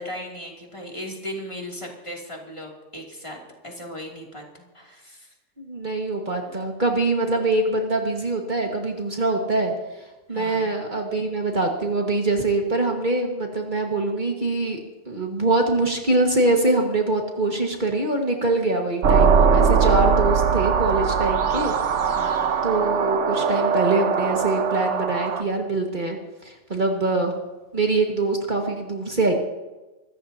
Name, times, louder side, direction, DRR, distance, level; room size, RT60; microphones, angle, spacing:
voice 1, 0.0-3.4 3.6-5.3 6.5-6.7 10.3-10.7 22.1-22.5, equal, 25° left, -1 dB, 2.8 m, -37 dB
voice 2, 5.6-9.7 10.3-14.8 15.1-21.7 22.0-22.1 22.6-27.4 27.7-29.3, right 2 dB, 45° right, 1 dB, 1.9 m, -24 dB
sound 1, 19.0-25.4, right 6 dB, 90° right, 1.2 m, -21 dB
25.0 x 14.0 x 2.8 m, 1.1 s
omnidirectional pair, 1.2 m